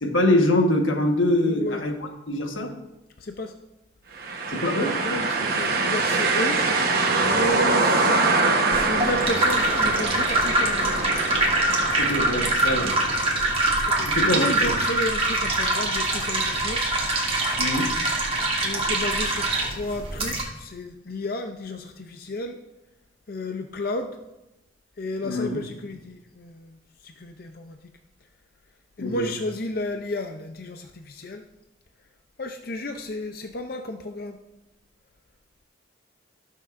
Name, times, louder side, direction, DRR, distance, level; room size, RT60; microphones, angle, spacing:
voice 1, 0.0-1.9 2.3-2.7 4.5-4.9 12.0-12.9 14.0-14.8 17.6-17.9 25.2-25.6 29.0-29.3, left 1 dB, 90° left, 3 dB, 1.3 m, -23 dB
voice 2, 1.5-1.8 3.2-3.5 4.8-6.6 7.2-8.2 8.5-11.3 13.9-16.8 18.6-22.6 23.3-24.2 25.0-27.8 29.0-31.4 32.4-34.4, left 2 dB, 50° left, 5 dB, 0.5 m, -32 dB
sound 1, 4.2-14.0, right 3 dB, 50° right, 1.1 m, -24 dB
sound 2, 8.7-20.4, right 2 dB, 30° right, 1.4 m, -24 dB
17.5 x 6.4 x 2.5 m, 0.95 s
head